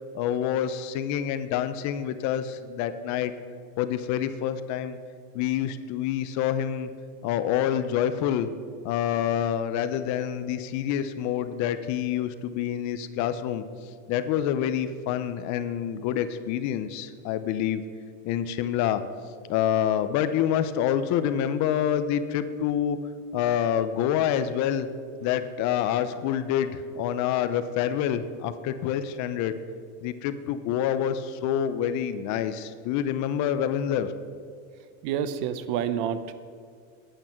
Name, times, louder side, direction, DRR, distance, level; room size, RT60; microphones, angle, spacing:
voice 1, 0.1-3.3 3.8-5.0 5.3-6.9 7.2-8.5 8.8-13.6 14.1-17.8 18.2-19.0 19.5-23.0 23.3-24.9 25.2-29.5 30.0-34.1, left 10 dB, 50° left, 11 dB, 0.8 m, -27 dB
voice 2, 35.0-36.3, right 9 dB, 60° right, 12 dB, 0.9 m, -28 dB
11.0 x 8.9 x 5.9 m, 2.1 s
supercardioid pair, 135°, 36 cm